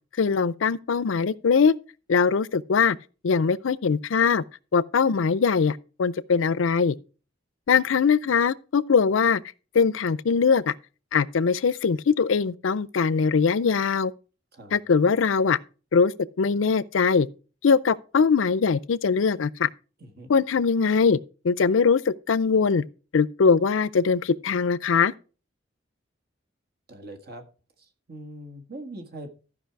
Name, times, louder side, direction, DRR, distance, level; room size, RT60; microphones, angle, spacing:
voice 1, 0.2-1.7 2.1-3.0 3.2-4.4 4.7-7.0 7.7-9.4 9.7-10.7 11.1-14.1 14.7-15.6 15.9-16.1 16.4-17.3 17.6-19.7 20.3-21.2 21.4-22.8 23.1-25.1, left 5 dB, 85° left, 0.5 m, -21 dB
voice 2, 26.9-27.4 27.8-29.3, right 1 dB, 55° right, 1.7 m, -41 dB
14.0 x 5.4 x 4.6 m
head